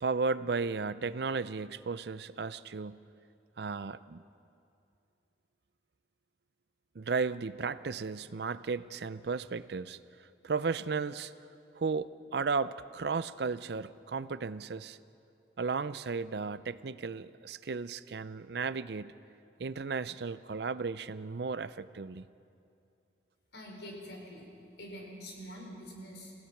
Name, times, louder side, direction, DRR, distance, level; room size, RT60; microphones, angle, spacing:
voice 1, 0.0-3.0 3.6-4.2 7.0-10.0 10.4-11.3 11.8-15.0 15.6-19.2 19.6-22.2, right 4 dB, 70° right, 15 dB, 0.5 m, -34 dB
voice 2, 23.5-24.4 24.8-26.3, equal, 85° left, 0 dB, 4.8 m, -45 dB
29.0 x 16.5 x 5.9 m, 2.6 s
head